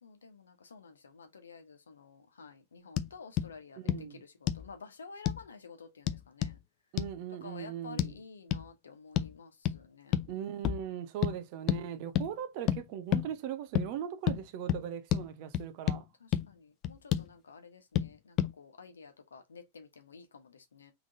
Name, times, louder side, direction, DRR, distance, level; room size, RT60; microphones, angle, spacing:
voice 1, 0.0-6.6 7.4-10.2 11.9-12.0 16.2-20.9, left 5 dB, 70° left, 1.0 m, -51 dB
sound 1, 3.0-3.1 3.4-3.5 3.9-4.0 4.5-4.7 5.3-5.4 6.1-6.6 7.0-7.1 8.0-8.1 8.5-8.7 9.2-9.3 9.7-9.8 10.1-10.3 10.6-10.8 11.2-11.4 11.7-11.8 12.2-12.3 12.7-12.8 13.1-13.3 13.7-13.9 14.3-14.4 14.7-14.8 15.1-15.2 15.5-16.0 16.3-16.4 16.8-17.3 18.0-18.1 18.4-18.5, left 12 dB, 35° left, 0.4 m, -29 dB
voice 2, 3.8-4.2 6.9-8.1 10.3-16.0, right 10 dB, 45° right, 0.8 m, -39 dB
3.8 x 3.4 x 3.6 m
figure-of-eight pair, 90°, 0 cm